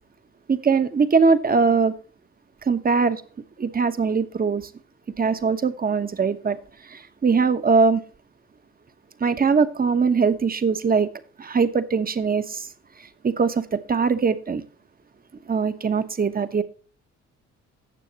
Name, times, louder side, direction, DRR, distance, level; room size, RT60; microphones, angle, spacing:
voice 1, 0.5-1.9 2.7-3.2 3.6-4.7 5.2-6.6 6.9-8.0 9.2-11.1 11.4-12.7 13.2-14.6 15.5-16.6, right 5 dB, 30° right, 1.1 m, -21 dB
16.5 x 6.9 x 2.9 m
cardioid pair, 90°, 30 cm